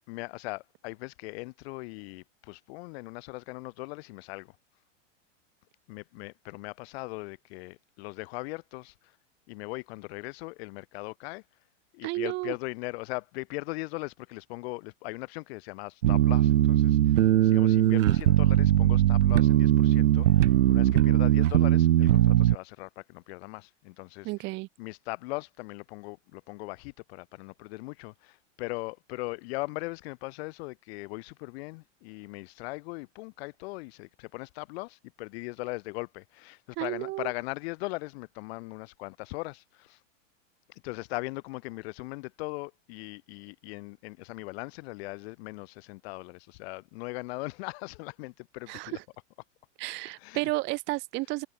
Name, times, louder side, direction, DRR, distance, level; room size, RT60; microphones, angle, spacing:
voice 1, 0.0-4.6 5.9-9.2 9.5-11.4 11.9-24.5 24.8-40.0 40.7-49.0 50.2-50.5, left 24 dB, 50° left, 5.8 m, -39 dB
voice 2, 12.0-12.5 24.2-24.7 36.8-37.3 48.7-49.0 49.8-51.5, right 22 dB, 30° right, 0.7 m, -32 dB
sound 1, 16.0-22.6, right 13 dB, 80° right, 1.3 m, -20 dB
hypercardioid pair, 130°, 38 cm